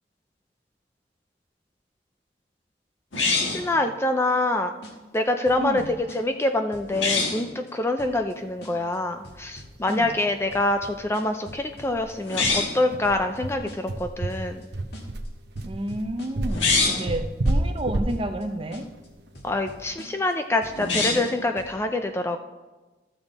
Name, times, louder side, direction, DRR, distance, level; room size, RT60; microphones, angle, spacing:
sound 1, 3.1-3.7 6.9-7.4 12.2-12.9 16.5-17.1 20.7-21.4, left 4 dB, 80° left, 1.6 m, -24 dB
voice 1, 3.5-4.7 5.1-5.8 6.1-14.6 19.4-22.4, left 2 dB, 15° left, 6 dB, 0.4 m, -25 dB
sound 2, 4.8-5.2 5.5-6.4 6.7-7.1 7.3-7.7 8.0-8.3 8.6-9.0 9.2-10.2 10.5-12.1 12.4-12.8 13.0-13.4 13.7-14.0 14.3-14.7 14.9-15.3 15.6-16.5 16.8-17.2 17.5-17.8 18.1-18.4 18.7-19.1 19.3-20.3 20.6-21.8, equal, 60° left, 1.8 m, -45 dB
voice 2, 5.6-6.0 9.9-10.2 15.6-18.8, right 1 dB, 30° right, 7 dB, 0.7 m, -31 dB
sound 3, 9.5-9.6 9.9-10.0 10.4-10.5 10.9-11.0 11.5-19.9, right 1 dB, 60° right, 0.8 m, -30 dB
13.0 x 7.0 x 4.1 m, 1.2 s
head